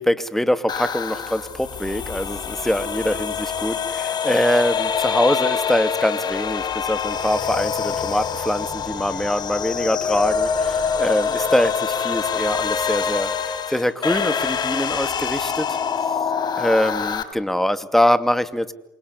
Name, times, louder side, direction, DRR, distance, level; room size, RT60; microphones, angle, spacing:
voice 1, 0.0-15.8 16.6-18.7, equal, 5° left, 11 dB, 2.5 m, -23 dB
sound 1, 0.7-17.2, left 7 dB, 40° left, 4.4 m, -25 dB
28.5 x 25.5 x 8.2 m, 0.89 s
hypercardioid pair, 80°, 11 cm